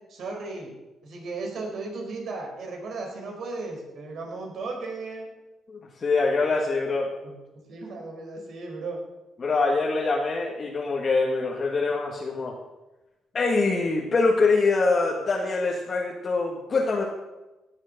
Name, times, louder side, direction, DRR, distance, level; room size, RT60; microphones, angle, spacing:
voice 1, 0.1-0.7 1.0-5.3 7.2-7.3 7.7-9.0, right 3 dB, 65° right, 1 dB, 4.6 m, -35 dB
voice 2, 5.7-7.1 9.4-12.6 13.3-17.1, left 3 dB, 40° left, -1 dB, 1.9 m, -24 dB
17.0 x 7.3 x 6.6 m, 1.0 s
cardioid pair, 90°, 0 cm